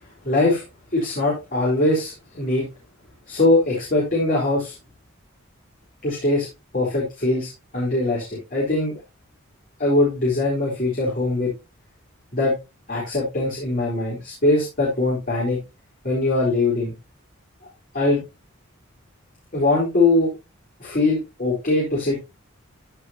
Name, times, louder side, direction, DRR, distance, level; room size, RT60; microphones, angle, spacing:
voice 1, 0.2-0.6 0.9-2.6 3.3-4.7 6.0-6.5 6.7-9.0 9.8-11.5 12.3-12.5 12.9-15.6 16.0-16.9 17.9-18.2 19.5-20.3 20.8-22.2, left 2 dB, 45° left, -5 dB, 4.1 m, -21 dB
14.5 x 5.1 x 2.9 m, 0.25 s
head